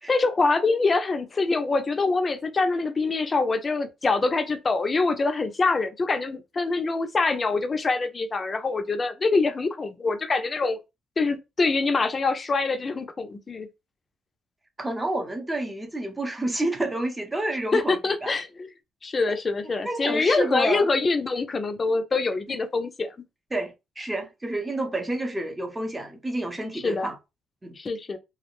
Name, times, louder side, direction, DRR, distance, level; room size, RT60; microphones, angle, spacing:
voice 1, 0.1-10.8 11.2-13.7 17.7-18.7 19.0-23.1 26.7-27.1 27.8-28.2, left 3 dB, 35° left, 0.5 m, -25 dB
voice 2, 14.8-18.4 19.3-19.4 19.8-20.9 23.5-27.2 27.6-27.7, right 1 dB, 15° right, 0.8 m, -29 dB
2.3 x 2.1 x 3.0 m
cardioid pair, 90°, 0 cm